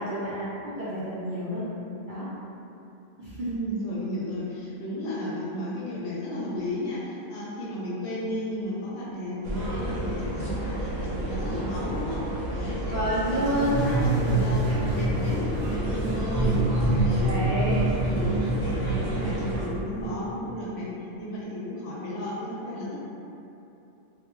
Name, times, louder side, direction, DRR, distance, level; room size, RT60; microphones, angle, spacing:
voice 1, 0.0-1.6 2.1-2.2 3.2-3.5 12.9-13.9 15.1-15.2 17.2-17.9, equal, 55° right, -12 dB, 0.6 m, -29 dB
voice 2, 3.4-17.7 18.1-20.9 21.2-23.0, equal, 65° left, -7 dB, 0.8 m, -33 dB
sound 1, 9.4-19.7, equal, 75° right, 0.9 m, -32 dB
sound 2, 13.3-20.1, right 2 dB, 15° left, 0.4 m, -27 dB
2.2 x 2.0 x 2.9 m, 2.8 s
omnidirectional pair, 1.3 m